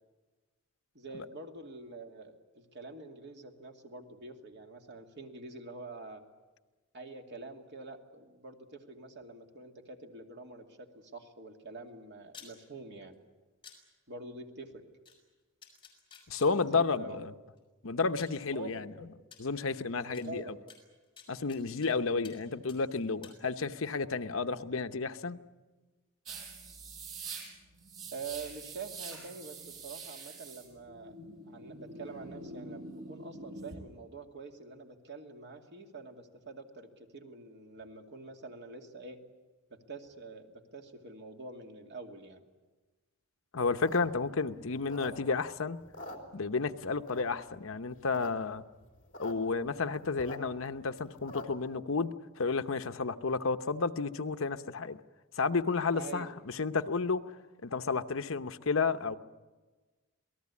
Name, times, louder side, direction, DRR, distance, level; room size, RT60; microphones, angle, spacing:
voice 1, 0.9-6.2 6.9-13.2 14.1-14.8 16.7-17.2 18.5-19.1 20.0-20.5 28.1-31.2 31.5-39.2 39.7-42.4 55.9-56.3, right 3 dB, 55° right, 3 dB, 2.5 m, -46 dB
sound 1, 12.3-12.5 13.6-13.8 15.1-15.2 15.6-16.5 17.6-17.7 18.2-18.4 19.3-19.4 20.1-20.2 20.7-21.9 22.2-22.4 22.7-23.4, left 7 dB, 25° left, 6.5 m, -52 dB
voice 2, 16.3-17.3 17.8-18.9 19.4-20.4 21.3-25.4 31.2-31.3 43.5-45.8 46.3-48.6 49.2-55.0 55.3-57.3 57.6-59.2, left 4 dB, 65° left, 10 dB, 0.9 m, -32 dB
sound 2, 26.3-33.8, right 3 dB, 70° right, 6.1 m, -45 dB
sound 3, 43.7-45.5 45.8-46.7 47.1-47.5 47.9-48.3 48.6-48.7 48.8-49.3 49.7-51.7, left 1 dB, 40° left, 3.6 m, -45 dB
27.5 x 19.0 x 8.5 m, 1.3 s
head